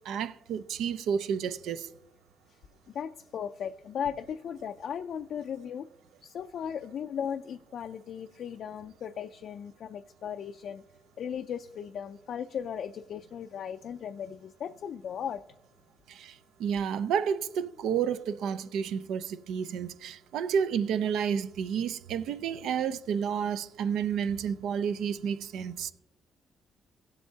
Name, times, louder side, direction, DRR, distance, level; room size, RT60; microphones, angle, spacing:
voice 1, 0.1-1.9 16.1-16.3 16.6-25.9, right 7 dB, 80° right, 0.5 m, -30 dB
voice 2, 2.9-5.9 6.2-10.8 11.2-15.4, left 8 dB, 65° left, 0.3 m, -37 dB
17.0 x 7.8 x 2.8 m
cardioid pair, 90°, 0 cm